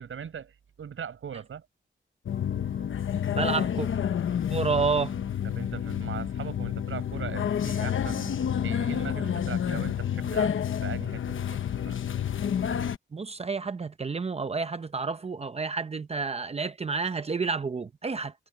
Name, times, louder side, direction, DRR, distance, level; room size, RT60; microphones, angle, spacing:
voice 1, 0.0-1.7 5.4-8.4 8.6-12.0, right 7 dB, 90° right, 6.7 m, -40 dB
sound 1, 2.3-13.0, left 9 dB, 80° left, 1.0 m, -29 dB
voice 2, 3.3-3.9 4.5-5.1 13.1-18.3, right 4 dB, 30° right, 0.7 m, -30 dB
wide cardioid pair, 175°, 20 cm